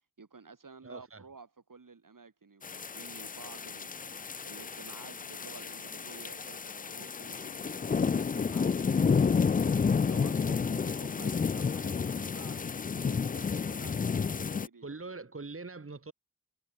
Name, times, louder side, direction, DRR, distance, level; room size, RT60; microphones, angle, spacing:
voice 1, 0.2-14.9, right 4 dB, 75° right, 4.7 m, -52 dB
voice 2, 0.8-1.2 14.8-16.1, right 3 dB, 40° right, 1.9 m, -42 dB
sound 1, 2.6-14.7, left 5 dB, 25° left, 0.3 m, -31 dB
cardioid pair, 45°, 33 cm